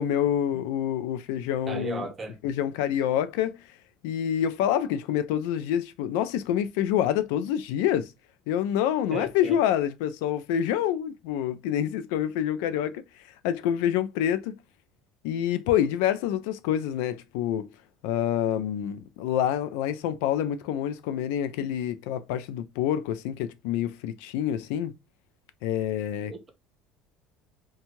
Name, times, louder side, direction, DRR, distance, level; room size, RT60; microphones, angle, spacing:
voice 1, 0.0-2.1 2.4-3.6 4.0-8.1 8.5-13.0 13.4-14.5 15.2-17.7 18.0-24.9 25.6-26.3, left 10 dB, 85° left, 0.4 m, -27 dB
voice 2, 1.7-2.4 9.1-9.6 26.3-26.5, right 3 dB, 25° right, 0.8 m, -35 dB
2.6 x 2.3 x 2.9 m
cardioid pair, 135°, 0 cm